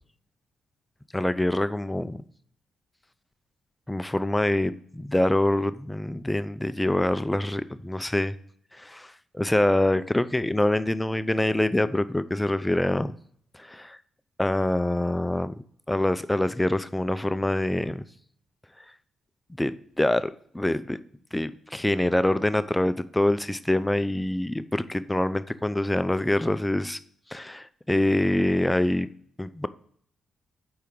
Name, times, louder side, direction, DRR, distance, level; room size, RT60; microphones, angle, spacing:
voice 1, 1.1-2.2 3.9-8.4 8.7-13.1 13.5-14.0 14.4-15.5 15.9-18.0 19.5-21.0 21.3-27.0 27.3-29.1 29.4-29.7, left 1 dB, 10° left, 0.4 m, -25 dB
4.7 x 4.3 x 5.2 m
hypercardioid pair, 45°, 0 cm